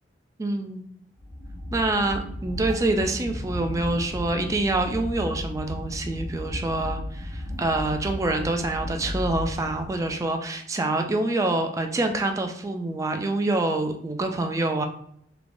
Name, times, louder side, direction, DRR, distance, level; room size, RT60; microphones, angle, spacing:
voice 1, 0.4-0.8 1.7-14.9, right 2 dB, 20° right, 5 dB, 0.3 m, -26 dB
sound 1, 1.2-10.3, left 1 dB, 35° right, 0.9 m, -34 dB
3.2 x 2.1 x 2.5 m, 0.67 s
head